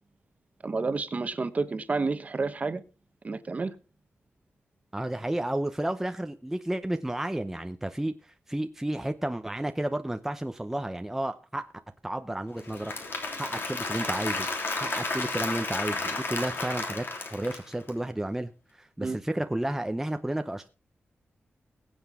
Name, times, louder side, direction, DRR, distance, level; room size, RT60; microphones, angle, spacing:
voice 1, 0.6-2.8 3.2-3.7 19.0-19.2, right 3 dB, 35° right, 11 dB, 1.1 m, -30 dB
voice 2, 4.9-11.7 12.0-12.9 13.4-14.5 14.8-20.7, right 1 dB, 10° right, 7 dB, 0.7 m, -32 dB
Applause / Crowd, 12.6-17.9, left 3 dB, 60° left, 3.4 m, -32 dB
22.0 x 8.1 x 3.6 m, 0.34 s
wide cardioid pair, 140°, 4 cm